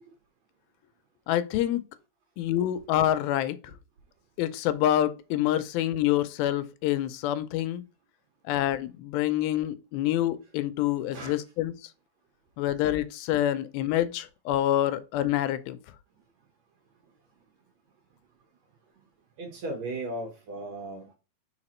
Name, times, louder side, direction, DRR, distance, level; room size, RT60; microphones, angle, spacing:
voice 1, 1.3-1.8 2.4-3.6 4.4-7.8 8.5-11.7 12.6-15.8, left 12 dB, 85° left, 2.4 m, -27 dB
voice 2, 11.1-11.4 18.9-19.1 19.4-21.1, right 2 dB, 65° right, 1.8 m, -37 dB
5.0 x 4.7 x 4.2 m
omnidirectional pair, 4.3 m